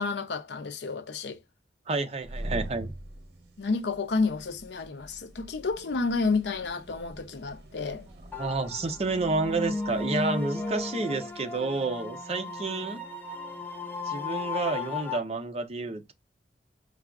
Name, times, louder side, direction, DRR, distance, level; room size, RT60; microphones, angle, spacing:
voice 1, 0.0-1.4 3.6-8.1 12.7-12.8, left 4 dB, 75° left, 0.6 m, -30 dB
voice 2, 1.9-2.9 8.4-13.0 14.0-16.1, right 3 dB, 35° right, 0.5 m, -30 dB
sound 1, 2.1-12.5, right 1 dB, 70° right, 0.8 m, -44 dB
sound 2, 8.3-15.2, left 3 dB, 10° left, 0.5 m, -35 dB
4.7 x 2.3 x 2.3 m
head